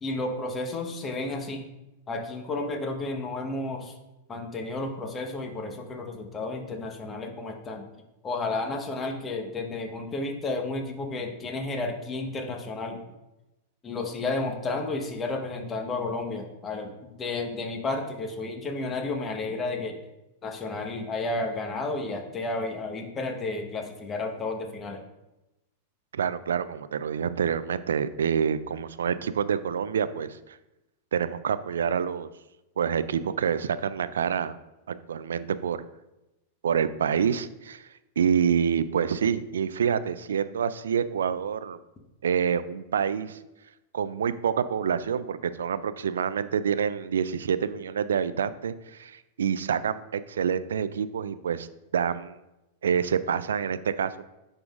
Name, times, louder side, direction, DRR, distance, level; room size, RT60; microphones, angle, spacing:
voice 1, 0.0-1.6 2.1-3.9 4.3-7.8 8.2-13.0 13.8-16.9 17.2-20.0 20.4-25.0, left 2 dB, 25° left, 3 dB, 1.1 m, -32 dB
voice 2, 26.1-30.6 31.1-32.3 32.8-34.5 34.9-35.8 36.6-37.9 38.2-41.8 42.2-43.4 43.9-51.7 51.9-52.3 52.8-54.2, right 7 dB, 80° right, 14 dB, 0.3 m, -27 dB
10.0 x 3.8 x 2.5 m, 0.96 s
hypercardioid pair, 105°, 0 cm